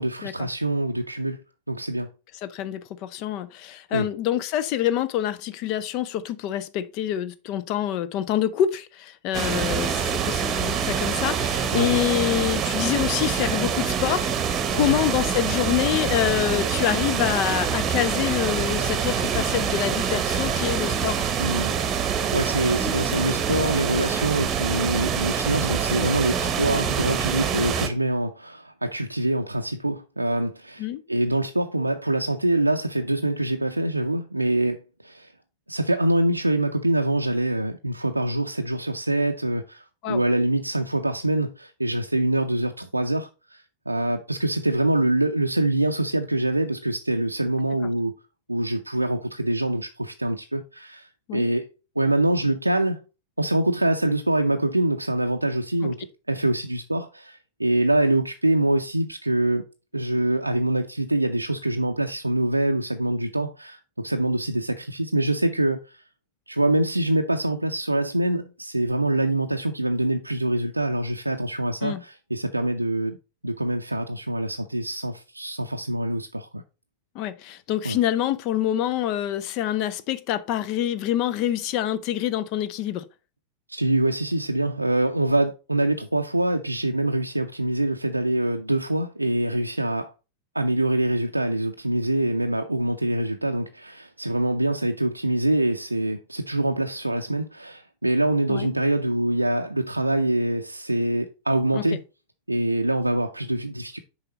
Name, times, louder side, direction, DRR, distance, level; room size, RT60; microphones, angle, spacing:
voice 1, 0.0-1.4 1.7-2.1 3.9-4.1 11.7-12.0 14.8-15.0 21.4-22.0 22.3-35.3 35.7-48.1 48.5-51.7 52.0-53.0 53.4-59.7 59.9-66.0 66.5-73.2 73.4-76.6 77.8-78.0 83.7-90.1 90.5-102.0 102.5-104.0, right 1 dB, 85° right, 0.5 m, -25 dB
voice 2, 2.4-21.2 30.8-31.0 40.0-40.2 51.3-51.5 55.8-55.9 71.8-72.0 77.1-83.0 98.5-98.7 101.7-101.8, left 11 dB, 40° left, 0.6 m, -26 dB
sound 1, 9.3-27.9, right 7 dB, 25° right, 1.1 m, -25 dB
6.7 x 4.9 x 4.1 m
figure-of-eight pair, 90°, 0 cm